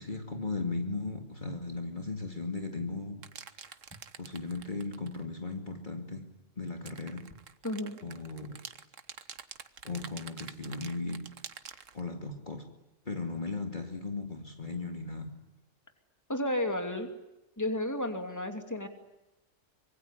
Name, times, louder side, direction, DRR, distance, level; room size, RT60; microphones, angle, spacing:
voice 1, 0.0-3.3 4.2-6.3 6.6-7.3 8.0-8.6 9.8-11.3 11.9-12.7 13.1-15.3, left 3 dB, 40° left, 4 dB, 2.5 m, -37 dB
sound 1, 3.2-5.2 6.7-12.0, right 7 dB, 85° right, 1.6 m, -47 dB
voice 2, 7.6-8.0 16.3-17.1 17.6-18.9, left 1 dB, 15° left, 6 dB, 2.8 m, -32 dB
25.5 x 23.0 x 9.9 m, 0.93 s
omnidirectional pair, 1.3 m